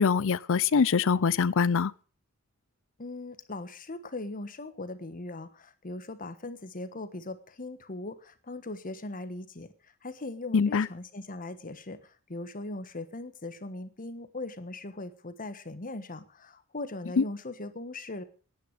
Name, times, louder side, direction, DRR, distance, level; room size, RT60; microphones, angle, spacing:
voice 1, 0.0-1.9 10.5-10.9 17.2-17.3, left 5 dB, 65° left, 0.5 m, -23 dB
voice 2, 3.0-9.7 10.0-18.2, left 2 dB, 40° left, 1.3 m, -39 dB
10.5 x 9.7 x 8.2 m
head